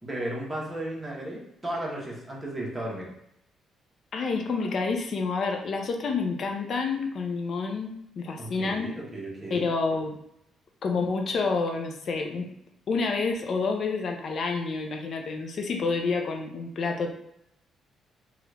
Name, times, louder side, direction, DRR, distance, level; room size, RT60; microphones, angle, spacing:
voice 1, 0.0-3.1 8.4-9.6, right 1 dB, 20° right, -4 dB, 1.1 m, -34 dB
voice 2, 4.1-8.9 9.5-10.2 10.8-12.5 12.9-17.2, left 4 dB, 55° left, 3 dB, 0.6 m, -28 dB
2.9 x 2.4 x 3.3 m, 0.77 s
cardioid pair, 90°, 0 cm